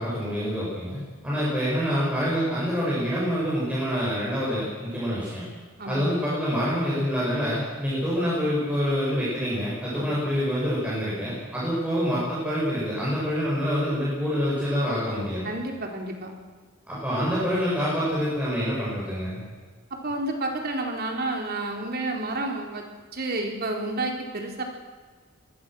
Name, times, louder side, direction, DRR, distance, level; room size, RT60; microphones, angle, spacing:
voice 1, 0.0-5.4 5.9-15.5 16.9-19.4, equal, 5° right, -8 dB, 7.5 m, -26 dB
voice 2, 5.8-6.1 9.9-10.1 15.4-16.3 20.0-22.9 23.1-24.6, right 2 dB, 50° right, 2 dB, 4.1 m, -30 dB
23.5 x 20.0 x 6.4 m, 1.5 s
head